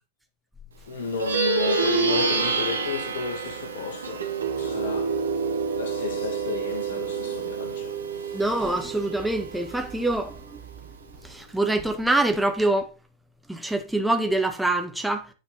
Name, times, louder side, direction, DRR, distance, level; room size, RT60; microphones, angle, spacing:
voice 1, 0.9-5.2 5.8-8.7, left 6 dB, 60° left, 1.9 m, -33 dB
Plucked string instrument, 1.1-10.8, right 5 dB, 70° right, 1.5 m, -28 dB
voice 2, 8.3-10.6 11.2-12.9 13.5-15.3, right 2 dB, 5° right, 1.5 m, -25 dB
9.4 x 5.1 x 4.1 m
figure-of-eight pair, 90°, 0 cm